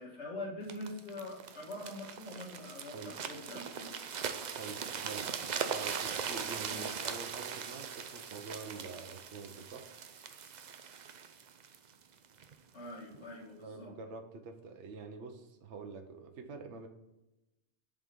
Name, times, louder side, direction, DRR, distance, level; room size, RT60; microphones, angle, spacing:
voice 1, 0.0-3.9 6.7-6.8 12.7-13.9, left 1 dB, 90° left, -4 dB, 2.1 m, -44 dB
sound 1, 0.7-12.5 13.1-13.3, right 7 dB, 50° right, 0.6 m, -40 dB
voice 2, 4.6-5.3 5.7-9.9 13.6-16.9, right 4 dB, 85° right, 5 dB, 1.1 m, -46 dB
7.1 x 3.8 x 5.2 m, 0.97 s
omnidirectional pair, 1.2 m